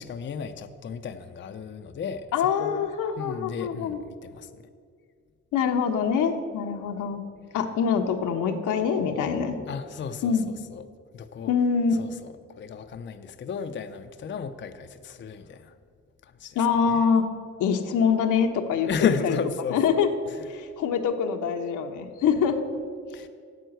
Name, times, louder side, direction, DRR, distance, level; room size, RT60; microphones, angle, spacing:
voice 1, 0.0-2.3 2.6-2.8 3.2-4.5 9.5-10.4 10.7-10.8 11.1-11.5 12.0-12.1 12.6-15.7 16.2-16.6 18.8-19.8 23.1-23.3, left 6 dB, 40° left, 8 dB, 0.6 m, -33 dB
voice 2, 2.3-4.0 5.5-7.2 7.5-9.6 10.2-10.5 11.5-12.0 16.5-17.3 17.6-18.9 19.2-19.4 19.7-20.1 20.5-22.6 23.1-23.2, left 6 dB, 85° left, 5 dB, 1.1 m, -24 dB
9.2 x 7.8 x 7.8 m, 2.1 s
cardioid pair, 90°, 30 cm